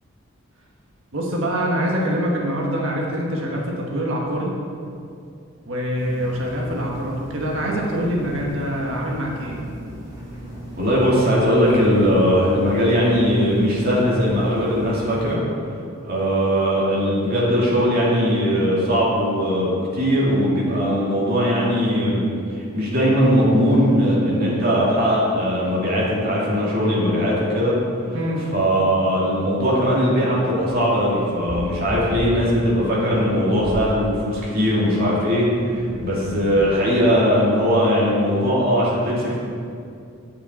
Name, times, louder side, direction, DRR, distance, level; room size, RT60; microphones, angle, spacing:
voice 1, 1.1-4.5 5.7-9.6 28.1-28.5, equal, 70° right, -2 dB, 1.4 m, -24 dB
sound 1, 6.0-15.3, right 1 dB, 15° right, 1.7 m, -37 dB
voice 2, 10.8-15.4 16.0-22.2 22.5-27.8 28.5-39.4, equal, 45° right, -6 dB, 2.3 m, -19 dB
sound 2, 31.5-34.0 35.2-36.9, equal, 5° left, 1.2 m, -34 dB
8.6 x 7.1 x 4.3 m, 2.4 s
head